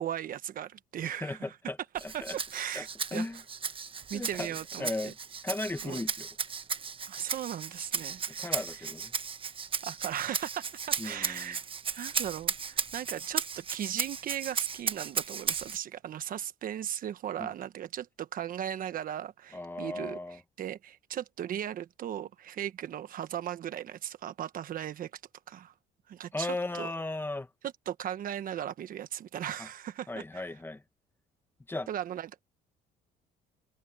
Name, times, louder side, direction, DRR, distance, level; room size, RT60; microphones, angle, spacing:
voice 1, 0.0-3.4 4.1-5.1 5.8-6.0 7.1-8.9 9.8-11.6 11.9-25.1 25.5-25.7 26.1-26.9 27.6-30.6 31.9-32.4, right 10 dB, 55° right, 1.2 m, -37 dB
voice 2, 1.0-1.8 2.0-2.4 2.8-2.9 3.1-3.4 4.1-5.2 5.4-6.3 8.4-9.1 11.0-11.6 17.4-17.5 19.5-20.4 26.3-27.5 29.6-29.7 30.1-30.8 31.7-31.9, left 2 dB, 15° left, 2.0 m, -36 dB
Rattle (instrument), 2.0-15.8, right 6 dB, 30° right, 1.3 m, -35 dB
cardioid pair, 110°, 17 cm